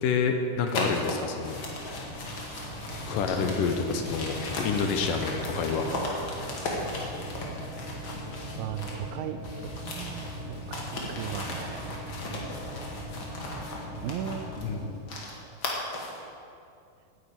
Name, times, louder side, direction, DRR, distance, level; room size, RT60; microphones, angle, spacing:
voice 1, 0.0-1.6 1.8-2.1 3.1-5.9 14.6-14.8, left 5 dB, 75° left, 5 dB, 2.4 m, -28 dB
sound 1, 0.7-9.1 9.4-16.2, left 2 dB, 40° left, 2.2 m, -37 dB
sound 2, 1.4-14.9, equal, 35° right, 1.0 m, -39 dB
voice 2, 8.6-9.4 9.8-12.0 14.0-14.5, right 11 dB, 80° right, 10 dB, 2.1 m, -37 dB
10.5 x 9.5 x 8.8 m, 2.5 s
omnidirectional pair, 4.3 m